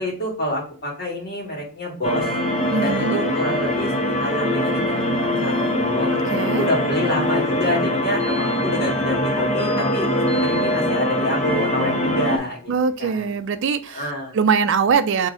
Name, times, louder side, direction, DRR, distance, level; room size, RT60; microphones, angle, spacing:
voice 1, 0.0-2.3 2.8-3.9 4.2-6.1 6.6-10.1 10.4-12.7 13.0-13.3 13.9-14.4, left 1 dB, 50° left, -3 dB, 1.8 m, -27 dB
sound 1, 2.0-12.4, left 1 dB, 35° left, 0.6 m, -22 dB
sound 2, 2.2-12.4, left 1 dB, 5° left, 0.8 m, -35 dB
voice 2, 2.7-3.2 6.3-6.7 12.7-14.0 14.3-15.3, right 5 dB, 60° right, 9 dB, 0.4 m, -21 dB
3.7 x 3.2 x 3.7 m, 0.40 s
head